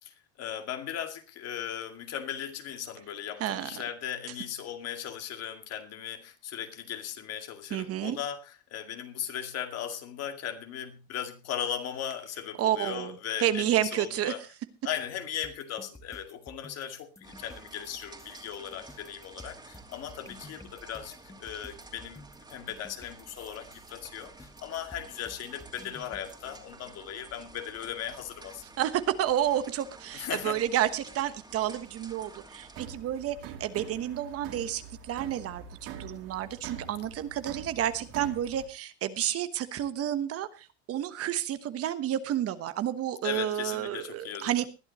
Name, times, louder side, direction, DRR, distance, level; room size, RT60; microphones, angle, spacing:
voice 1, 0.0-14.4 14.8-22.2 22.5-28.6 30.1-30.6 43.2-44.5, left 9 dB, 50° left, 2.2 m, -38 dB
voice 2, 3.4-3.7 7.7-8.2 12.6-14.3 28.8-44.7, right 11 dB, 45° right, 1.2 m, -30 dB
sound 1, 15.4-26.3, left 2 dB, 10° left, 1.6 m, -51 dB
sound 2, 17.2-32.9, right 3 dB, 15° right, 2.7 m, -51 dB
sound 3, 32.7-38.7, right 7 dB, 70° right, 3.2 m, -44 dB
20.0 x 11.0 x 3.0 m
supercardioid pair, 120°, 33 cm